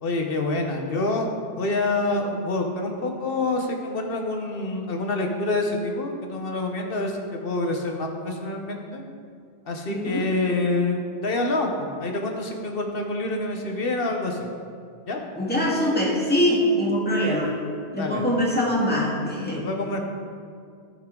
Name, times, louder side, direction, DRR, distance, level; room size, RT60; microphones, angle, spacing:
voice 1, 0.0-1.3 1.6-9.0 9.7-14.4 15.1-15.2 18.0-18.2 19.5-20.0, left 2 dB, 60° left, 3 dB, 1.2 m, -27 dB
voice 2, 9.9-10.3 15.4-17.6 17.9-19.6, equal, 10° left, -5 dB, 1.8 m, -23 dB
15.0 x 5.5 x 3.8 m, 2.2 s
omnidirectional pair, 1.1 m